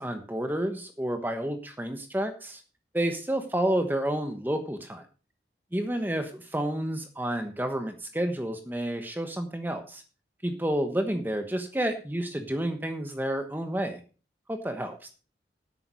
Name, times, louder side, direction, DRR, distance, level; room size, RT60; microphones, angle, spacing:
voice 1, 0.0-2.6 2.9-5.0 5.7-10.0 10.4-14.0 14.5-15.1, right 1 dB, 10° right, 6 dB, 1.1 m, -30 dB
11.0 x 8.5 x 5.2 m, 0.35 s
head